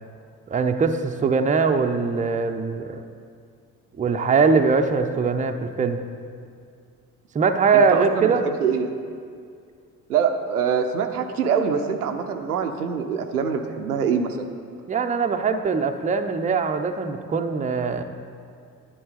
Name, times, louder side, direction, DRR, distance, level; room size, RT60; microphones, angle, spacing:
voice 1, 0.5-3.0 4.0-6.0 7.3-8.4 14.9-18.0, right 5 dB, 15° right, 6 dB, 0.5 m, -21 dB
voice 2, 7.7-8.9 10.1-14.5, right 6 dB, 85° right, 5 dB, 0.5 m, -24 dB
11.0 x 7.3 x 4.0 m, 2.2 s
figure-of-eight pair, 40°, 44 cm